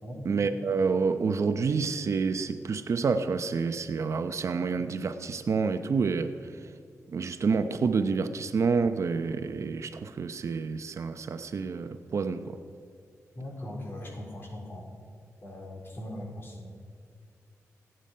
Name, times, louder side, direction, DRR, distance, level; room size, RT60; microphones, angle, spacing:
voice 1, 0.2-6.3 7.1-12.6, right 5 dB, 60° right, 9 dB, 0.8 m, -28 dB
voice 2, 13.4-14.8 15.4-16.7, left 1 dB, 40° left, 0 dB, 4.1 m, -40 dB
26.5 x 9.1 x 5.5 m, 2.1 s
wide cardioid pair, 105°, 6 cm